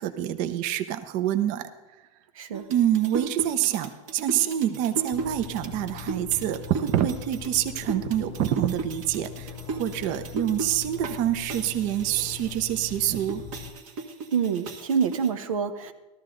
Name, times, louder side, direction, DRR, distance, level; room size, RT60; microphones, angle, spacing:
voice 1, 0.0-1.7 2.7-13.4, right 12 dB, 50° right, 10 dB, 0.8 m, -26 dB
voice 2, 2.3-2.7 14.3-15.9, right 6 dB, 90° right, 8 dB, 1.0 m, -26 dB
sound 1, 2.5-11.2 11.5-15.3, right 3 dB, 70° right, 1.7 m, -36 dB
sound 2, 5.1-13.7, left 11 dB, 35° left, 0.7 m, -41 dB
14.0 x 13.5 x 3.9 m, 1.1 s
supercardioid pair, 125°, 17 cm